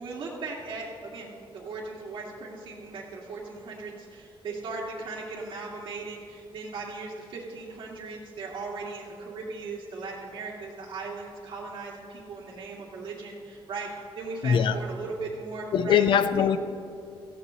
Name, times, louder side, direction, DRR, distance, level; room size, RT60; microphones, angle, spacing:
voice 1, 0.0-13.9 14.2-16.0 16.4-16.5, right 3 dB, 70° right, 2.4 m, -38 dB
voice 2, 14.4-14.8 15.7-16.6, left 8 dB, 65° left, 0.7 m, -22 dB
17.5 x 15.5 x 3.2 m
wide cardioid pair, 165°, 9 cm